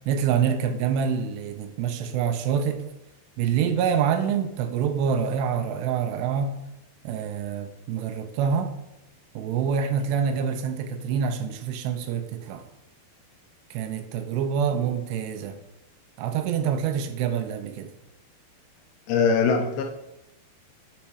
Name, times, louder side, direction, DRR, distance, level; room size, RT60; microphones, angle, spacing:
voice 1, 0.1-2.8 3.4-6.6 7.0-8.7 9.4-12.6 13.7-15.6 16.2-17.9, right 7 dB, 85° right, 2.8 m, -26 dB
voice 2, 19.1-19.8, left 5 dB, 75° left, 2.5 m, -21 dB
9.1 x 4.2 x 4.8 m
omnidirectional pair, 4.9 m